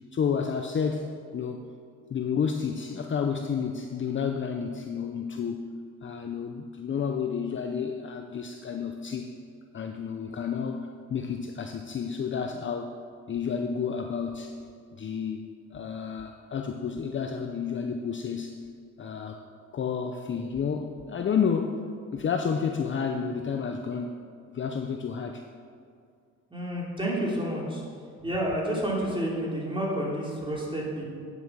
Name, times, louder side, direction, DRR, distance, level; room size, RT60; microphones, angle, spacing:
voice 1, 0.1-1.6 2.1-5.7 6.0-9.3 9.7-12.9 13.3-14.5 14.9-18.6 19.0-19.4 19.7-21.8 22.1-24.2 24.5-25.4, left 6 dB, 40° left, 5 dB, 0.7 m, -30 dB
voice 2, 26.5-27.8 28.2-31.0, right 1 dB, 15° right, -4 dB, 3.0 m, -29 dB
9.5 x 8.1 x 6.8 m, 2.2 s
cardioid pair, 90°, 30 cm